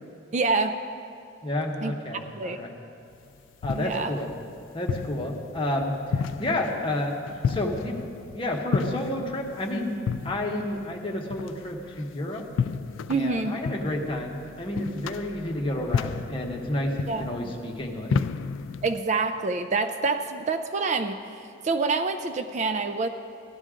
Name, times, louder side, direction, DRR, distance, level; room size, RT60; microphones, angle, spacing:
voice 1, 0.3-0.8 1.8-2.6 3.7-4.1 13.1-13.6 17.1-17.5 18.8-23.1, right 4 dB, 35° right, 8 dB, 0.4 m, -27 dB
voice 2, 1.4-2.7 3.6-4.3 4.7-7.2 7.4-8.0 8.3-10.0 10.2-12.4 13.1-18.2, left 1 dB, 25° left, 0 dB, 1.1 m, -30 dB
sound 1, 3.1-19.0, left 6 dB, 85° left, 0.3 m, -33 dB
15.5 x 11.5 x 3.7 m, 2.6 s
head